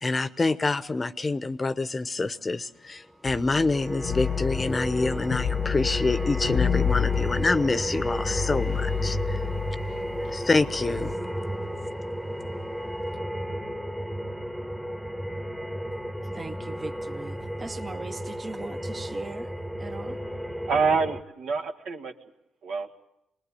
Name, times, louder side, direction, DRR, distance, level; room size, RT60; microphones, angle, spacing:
voice 1, 0.0-9.4 10.3-11.1, left 3 dB, 25° left, 0.8 m, -27 dB
sound 1, 3.3-11.1, left 8 dB, 80° left, 1.0 m, -30 dB
sound 2, 3.4-21.2, equal, 5° right, 1.1 m, -33 dB
voice 2, 16.3-19.5 19.8-20.2, right 3 dB, 25° right, 0.8 m, -39 dB
voice 3, 20.6-22.1 22.6-22.9, right 5 dB, 75° right, 1.9 m, -26 dB
24.0 x 20.0 x 8.4 m
cardioid pair, 90°, 0 cm